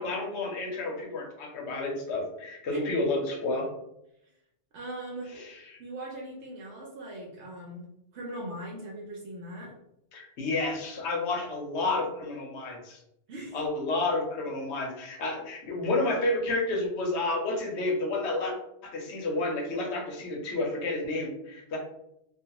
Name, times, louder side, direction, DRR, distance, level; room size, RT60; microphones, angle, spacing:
voice 1, 0.0-3.7 5.3-5.8 10.1-13.0 13.5-18.5 18.8-21.8, left 2 dB, 75° left, 0 dB, 1.0 m, -30 dB
voice 2, 4.7-5.4 5.8-7.8 8.1-9.8 13.3-13.7, right 1 dB, 80° right, -2 dB, 0.9 m, -40 dB
2.4 x 2.3 x 2.8 m, 0.80 s
omnidirectional pair, 1.2 m